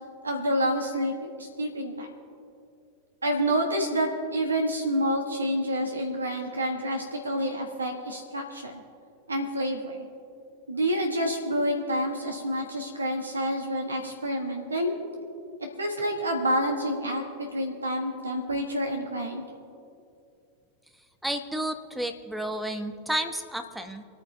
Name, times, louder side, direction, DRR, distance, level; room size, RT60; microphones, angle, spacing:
voice 1, 0.2-2.1 3.2-8.8 9.3-10.0 10.7-14.9 15.8-19.4, equal, 75° right, 2 dB, 1.5 m, -28 dB
voice 2, 21.2-24.0, right 1 dB, 5° right, 6 dB, 1.0 m, -31 dB
27.5 x 9.4 x 3.3 m, 2.5 s
figure-of-eight pair, 90°, 0 cm